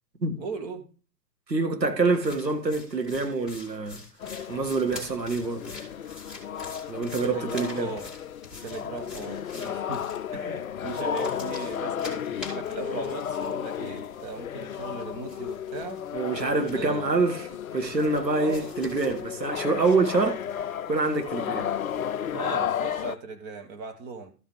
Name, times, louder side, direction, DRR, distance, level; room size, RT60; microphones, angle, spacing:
voice 1, 0.4-0.8 7.2-8.1 8.6-16.0 16.7-17.1 18.3-18.7 19.8-19.9 22.3-24.3, right 4 dB, 25° right, 1.5 m, -37 dB
voice 2, 1.5-4.0 4.5-5.7 6.9-7.9 16.1-17.4 17.7-20.4 20.9-21.7, right 3 dB, 85° right, 1.8 m, -26 dB
sound 1, 2.1-10.2 10.8-14.3 14.6-17.0 17.8-19.2, left 3 dB, ahead, 2.0 m, -45 dB
sound 2, 4.2-23.2, left 9 dB, 60° left, 0.6 m, -33 dB
13.0 x 5.6 x 4.7 m
figure-of-eight pair, 120°, 49 cm